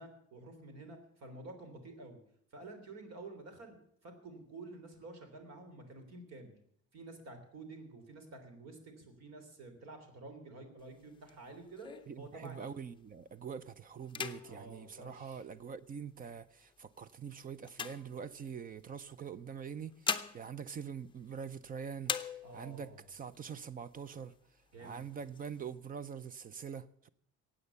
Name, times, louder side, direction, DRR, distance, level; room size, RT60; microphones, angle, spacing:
voice 1, 0.0-2.2 2.5-3.8 4.0-6.5 6.9-12.7 14.4-15.4 22.4-23.0 24.7-25.0, right 2 dB, 60° right, 3.3 m, -50 dB
sound 1, 10.8-13.0 13.4-13.7 14.0-15.9 16.6-18.8 19.6-21.7 22.0-22.9 23.3-23.4 23.7-24.4 24.8-25.7, left 6 dB, 15° left, 0.6 m, -42 dB
voice 2, 12.1-24.4 24.8-27.1, right 7 dB, 30° right, 0.4 m, -44 dB
16.0 x 8.9 x 6.9 m
cardioid pair, 170°, 29 cm